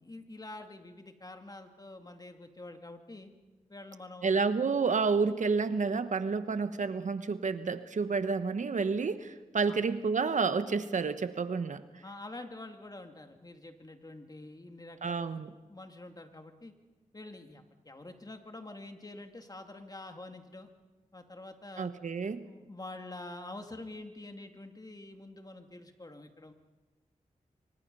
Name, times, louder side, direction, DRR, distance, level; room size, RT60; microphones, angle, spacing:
voice 1, 0.0-3.3 3.7-4.5 9.7-9.8 12.0-15.4 15.7-16.7 17.1-20.7 21.1-21.9 22.4-26.5, left 2 dB, 30° left, 5 dB, 2.4 m, -46 dB
voice 2, 4.2-11.8 15.0-15.5 21.8-22.4, right 4 dB, 65° right, 11 dB, 1.2 m, -30 dB
26.5 x 24.5 x 5.5 m, 1.2 s
cardioid pair, 65°, 14 cm